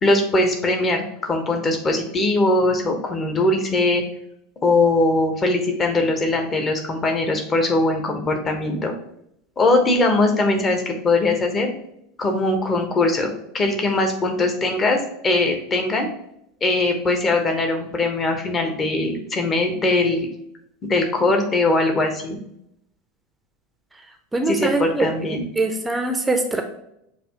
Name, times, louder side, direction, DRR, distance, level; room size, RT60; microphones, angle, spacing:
voice 1, 0.0-4.0 4.6-8.9 9.6-11.7 12.2-13.3 13.5-15.0 15.2-16.1 16.6-20.3 20.8-22.4 24.5-25.4, left 2 dB, 25° left, 4 dB, 1.0 m, -21 dB
voice 2, 24.3-25.1 25.6-26.6, right 2 dB, 10° right, 4 dB, 0.7 m, -22 dB
6.8 x 2.8 x 2.8 m, 0.76 s
figure-of-eight pair, 80°, 0 cm